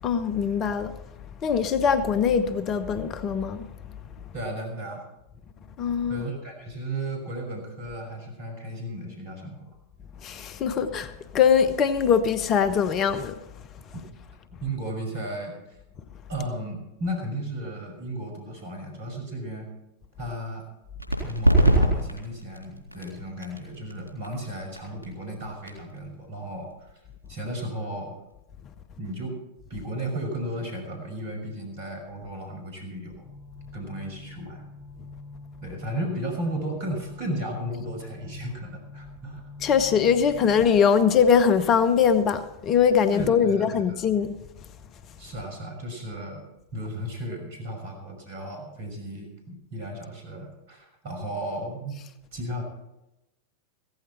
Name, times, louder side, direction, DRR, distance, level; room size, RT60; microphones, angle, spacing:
voice 1, 0.0-1.0 1.4-3.7 5.8-6.2 10.2-13.4 39.6-44.4, left 7 dB, 30° left, 0.9 m, -22 dB
voice 2, 4.3-5.0 6.1-9.7 14.6-15.8 16.3-19.7 20.2-20.7 21.2-26.9 27.3-28.2 29.0-29.4 29.7-33.3 33.7-34.7 35.6-39.5 43.1-44.0 45.2-46.4 46.7-52.0 52.3-52.6, right 1 dB, 55° right, 6.0 m, -34 dB
sound 1, 21.0-28.3, right 1 dB, 85° left, 3.7 m, -27 dB
sound 2, 33.2-40.6, left 2 dB, 10° right, 3.4 m, -45 dB
16.0 x 14.5 x 4.3 m
figure-of-eight pair, 90°, 0 cm